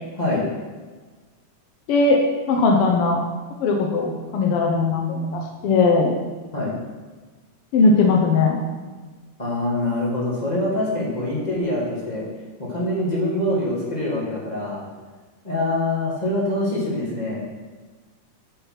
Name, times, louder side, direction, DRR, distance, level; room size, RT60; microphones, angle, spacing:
voice 1, 1.9-2.2 2.5-3.2 3.6-6.2 7.7-8.6, left 3 dB, 80° left, 1 dB, 1.2 m, -19 dB
voice 2, 9.4-12.3 12.6-14.8 15.4-17.4, left 1 dB, 20° left, -6 dB, 1.3 m, -24 dB
8.9 x 5.3 x 5.8 m, 1.3 s
omnidirectional pair, 3.8 m